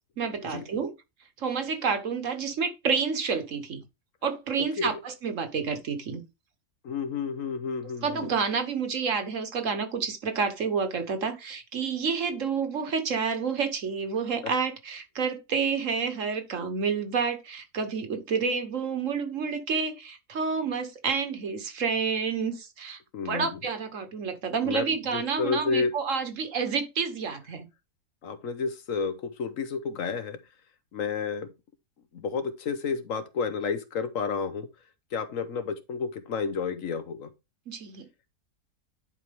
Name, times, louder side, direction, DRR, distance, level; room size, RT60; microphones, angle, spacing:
voice 1, 0.2-0.9 1.4-3.8 4.2-6.2 8.0-23.0 23.2-27.7 37.7-38.0, right 5 dB, 60° right, 1.5 m, -29 dB
voice 2, 4.6-5.0 6.8-8.3 14.4-14.5 23.1-23.6 24.6-25.9 28.2-30.4 30.9-31.5 32.1-34.7 35.1-37.3, left 5 dB, 65° left, 1.2 m, -31 dB
10.5 x 4.7 x 3.4 m
omnidirectional pair, 1.5 m